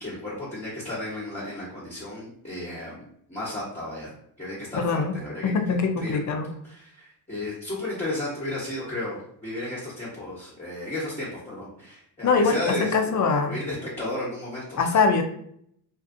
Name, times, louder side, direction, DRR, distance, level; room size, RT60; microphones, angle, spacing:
voice 1, 0.0-3.0 3.3-4.1 4.4-15.0, left 1 dB, 15° left, -8 dB, 1.0 m, -34 dB
voice 2, 4.7-5.1 5.4-6.5 12.2-13.5 14.8-15.2, left 4 dB, 40° left, 5 dB, 0.5 m, -23 dB
2.6 x 2.3 x 2.5 m, 0.68 s
supercardioid pair, 65°, 50 cm